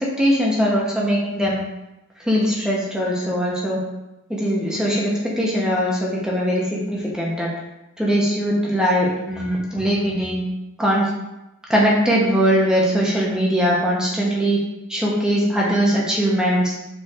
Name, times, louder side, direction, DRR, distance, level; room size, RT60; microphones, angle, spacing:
voice 1, 0.0-1.6 2.2-3.8 4.3-7.5 8.0-10.4 10.8-11.1 11.7-14.6 14.9-16.7, equal, 5° right, -4 dB, 0.8 m, -20 dB
4.5 x 4.4 x 2.5 m, 0.96 s
head